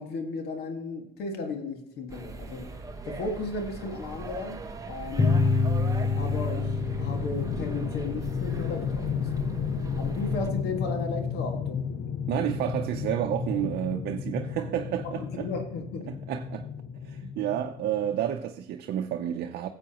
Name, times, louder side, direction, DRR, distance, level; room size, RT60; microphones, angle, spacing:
voice 1, 0.0-2.8 3.0-5.4 6.2-9.3 10.0-11.9 15.0-16.2, left 3 dB, 75° left, 1.9 m, -35 dB
sound 1, 2.1-10.5, right 4 dB, 20° right, 1.0 m, -40 dB
sound 2, 5.2-10.3, left 3 dB, 20° left, 0.7 m, -28 dB
sound 3, 6.0-18.2, left 7 dB, 55° left, 0.8 m, -33 dB
voice 2, 12.3-15.5 16.1-16.7 17.0-19.7, right 10 dB, 70° right, 0.7 m, -30 dB
14.0 x 8.0 x 3.0 m
cardioid pair, 110°, 17 cm